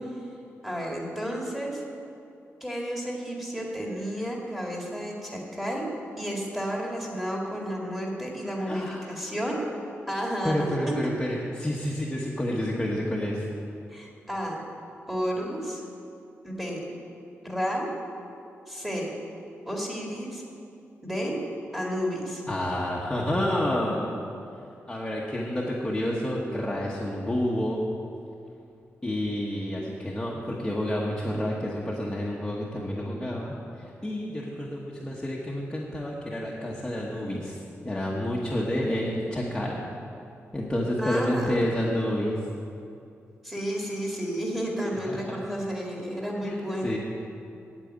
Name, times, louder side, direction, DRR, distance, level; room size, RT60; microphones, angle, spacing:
voice 1, 0.6-1.8 2.6-5.9 6.2-9.6 10.1-10.7 11.0-11.1 13.9-14.6 15.1-15.8 16.4-16.8 17.4-17.9 18.7-19.1 19.7-20.4 21.0-21.4 21.7-22.4 41.0-41.6 43.4-47.0, equal, 5° right, -2 dB, 2.1 m, -31 dB
voice 2, 8.7-9.1 10.4-13.4 22.5-24.1 24.9-27.8 29.0-39.8 40.5-42.4 45.0-45.4 46.4-47.0, left 1 dB, 10° left, -4 dB, 1.1 m, -29 dB
8.9 x 8.4 x 9.1 m, 2.6 s
wide cardioid pair, 160°, 5 cm